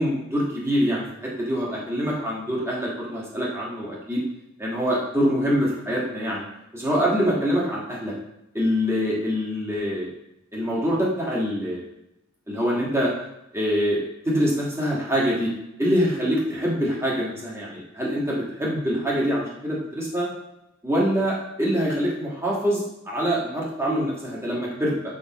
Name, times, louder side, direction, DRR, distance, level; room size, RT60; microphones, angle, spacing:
voice 1, 0.0-4.2 4.6-6.4 6.7-8.1 8.5-10.1 10.5-11.8 12.5-13.1 13.5-15.5 15.8-20.3 20.8-25.1, equal, 15° right, -5 dB, 1.6 m, -25 dB
6.4 x 5.3 x 3.0 m, 0.88 s
head